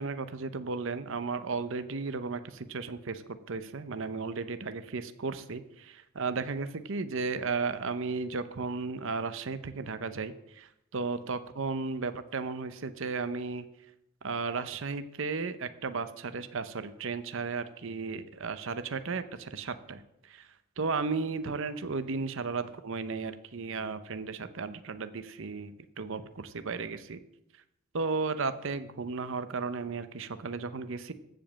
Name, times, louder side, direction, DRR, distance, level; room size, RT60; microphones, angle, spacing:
voice 1, 0.0-3.2 3.5-13.6 14.2-20.5 20.8-27.2 27.9-31.1, right 4 dB, 60° right, 11 dB, 0.7 m, -34 dB
14.5 x 5.1 x 7.4 m, 0.84 s
head